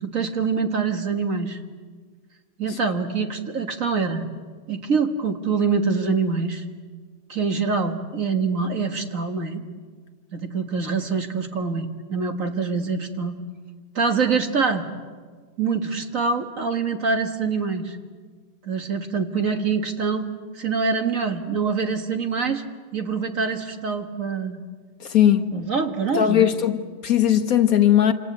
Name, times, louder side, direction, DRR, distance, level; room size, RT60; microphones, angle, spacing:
voice 1, 0.0-1.6 2.6-4.3 4.7-6.6 7.3-9.6 10.3-13.4 14.0-14.9 15.6-18.0 18.6-20.3 20.5-22.6 22.9-24.6 25.5-26.5, right 5 dB, 50° right, 1.9 m, -25 dB
voice 2, 25.0-25.5 26.1-28.1, left 10 dB, 55° left, 1.4 m, -19 dB
27.0 x 27.0 x 8.0 m
omnidirectional pair, 1.9 m